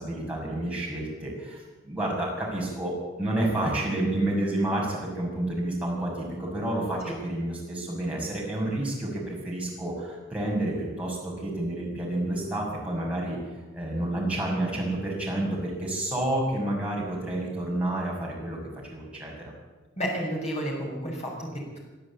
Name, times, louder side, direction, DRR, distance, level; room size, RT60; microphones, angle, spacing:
voice 1, 0.0-1.6 1.8-13.4 13.7-18.6 18.9-19.5, right 1 dB, 5° right, -4 dB, 6.6 m, -29 dB
voice 2, 20.0-21.8, equal, 30° left, -2 dB, 6.5 m, -31 dB
24.0 x 12.5 x 8.6 m, 1.2 s
head